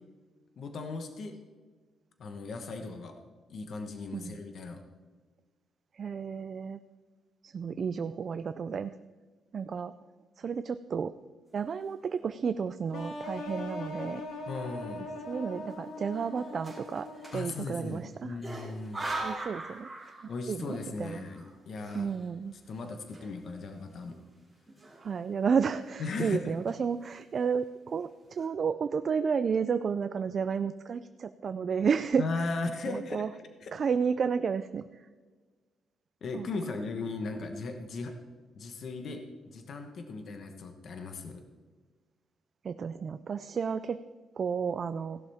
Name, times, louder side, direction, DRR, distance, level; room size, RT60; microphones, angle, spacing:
voice 1, 0.6-1.4 2.2-3.2 3.5-4.8 14.5-15.0 17.3-19.0 20.3-22.1 22.7-24.2 26.0-26.5 32.2-33.3 33.6-33.7 36.2-38.1 38.5-41.4, left 3 dB, 45° left, 5 dB, 1.2 m, -37 dB
voice 2, 5.9-6.8 7.4-8.9 9.5-9.9 10.4-11.1 11.5-14.2 15.3-17.1 17.3-18.4 19.2-19.9 20.5-21.2 21.9-22.5 25.0-32.2 32.9-33.3 33.7-35.0 36.3-36.5 42.6-44.0 44.4-45.2, right 6 dB, 35° right, 11 dB, 0.3 m, -31 dB
sound 1, 12.0-12.5 13.0-13.1 13.4-14.1 14.5-14.7 15.7-18.0 18.4-20.6 20.9-23.7 24.0-24.1 24.7-25.4 25.7-26.1 26.5-27.1 27.6-27.7 28.0-28.5, right 2 dB, 5° right, 3.2 m, -43 dB
sound 2, 12.9-17.8, left 2 dB, 85° left, 2.5 m, -40 dB
16.5 x 11.5 x 3.5 m, 1.4 s
cardioid pair, 175°, 0 cm